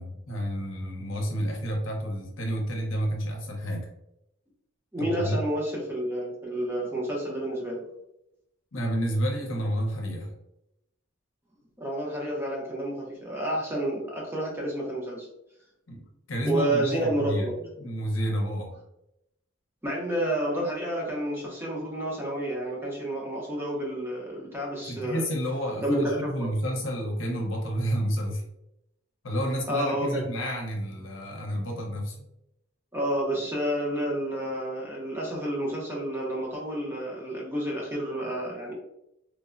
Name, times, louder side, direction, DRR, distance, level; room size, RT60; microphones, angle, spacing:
voice 1, 0.0-3.9 5.0-5.4 8.7-10.3 15.9-16.0 16.3-17.5 17.8-18.7 24.9-28.4 29.2-32.3, equal, 70° left, 0 dB, 0.7 m, -30 dB
voice 2, 4.9-7.8 11.8-15.3 16.4-17.7 19.8-25.2 25.8-26.5 29.7-30.2 32.9-38.7, right 1 dB, 10° right, -3 dB, 0.5 m, -30 dB
3.1 x 2.0 x 2.4 m, 0.83 s
head